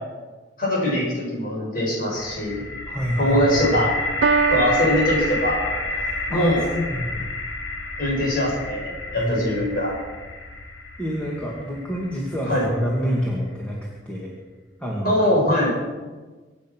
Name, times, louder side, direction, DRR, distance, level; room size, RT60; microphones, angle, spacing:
voice 1, 0.6-2.6 3.2-3.9 4.5-5.6 6.3-6.6 8.0-9.9 12.5-12.6 15.0-15.7, equal, 50° left, -3 dB, 7.0 m, -22 dB
sound 1, 2.2-14.0, left 2 dB, 85° left, 2.3 m, -30 dB
voice 2, 2.9-3.8 6.0-7.3 9.2-9.4 11.0-13.8 14.1-14.3 14.8-15.2, equal, 5° left, -3 dB, 2.3 m, -27 dB
Piano, 4.2-6.2, right 5 dB, 70° right, 0.5 m, -24 dB
24.5 x 9.2 x 6.3 m, 1.3 s
head